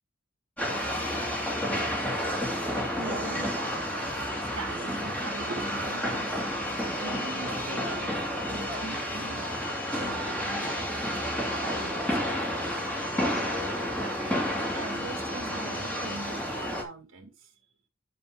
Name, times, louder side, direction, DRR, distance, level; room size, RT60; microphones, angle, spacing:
sound 1, 0.6-16.8, equal, 5° left, 2.5 m, -31 dB
voice 1, 2.8-4.0 4.5-6.4 7.0-8.2 8.5-10.9 11.6-12.6 14.0-17.5, right 3 dB, 80° right, 2.6 m, -42 dB
9.5 x 4.4 x 5.0 m
head